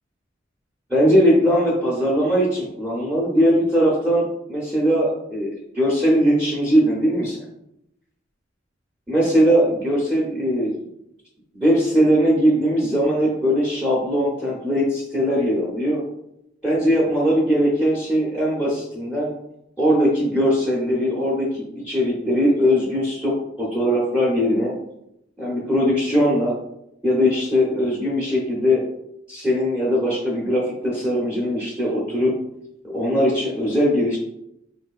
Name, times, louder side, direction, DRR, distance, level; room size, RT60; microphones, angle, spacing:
voice 1, 0.9-7.4 9.1-10.8 11.5-16.0 16.6-19.3 19.8-24.7 25.4-26.5 27.0-28.8 29.3-32.3 32.8-34.2, equal, 5° right, -5 dB, 0.7 m, -20 dB
4.4 x 2.7 x 2.3 m, 0.79 s
head